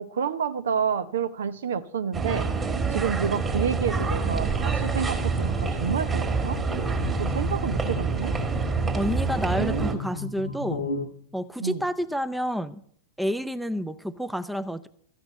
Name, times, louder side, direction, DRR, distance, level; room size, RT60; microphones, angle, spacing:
voice 1, 0.0-2.5 2.9-6.6 7.2-8.3 9.6-10.0 11.6-11.8, right 7 dB, 65° right, 0.7 m, -29 dB
sound 1, 2.1-10.0, right 4 dB, 20° right, 2.0 m, -27 dB
sound 2, 3.4-11.1, left 4 dB, 75° left, 1.1 m, -36 dB
voice 2, 8.9-10.8 11.3-12.8 13.2-14.9, equal, ahead, 0.6 m, -29 dB
14.0 x 6.2 x 9.1 m
figure-of-eight pair, 90°, 0 cm